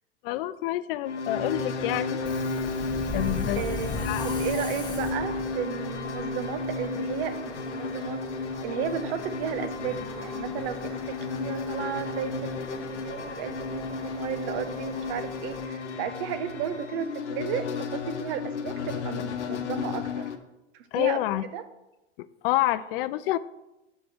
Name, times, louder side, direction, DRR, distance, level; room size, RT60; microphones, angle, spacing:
voice 1, 0.2-2.2 3.1-3.6 4.0-4.4 20.9-21.4 22.2-23.4, left 15 dB, 55° left, 15 dB, 0.4 m, -28 dB
sound 1, 1.0-20.4, left 4 dB, 85° left, 0.9 m, -33 dB
Subway metro underground, 2.2-15.7, left 3 dB, 10° left, 1.3 m, -40 dB
voice 2, 3.5-8.3 8.6-20.3 20.7-21.2 21.5-21.6, right 9 dB, 55° right, 10 dB, 0.9 m, -34 dB
6.4 x 5.0 x 6.1 m, 0.95 s
hypercardioid pair, 95°, 34 cm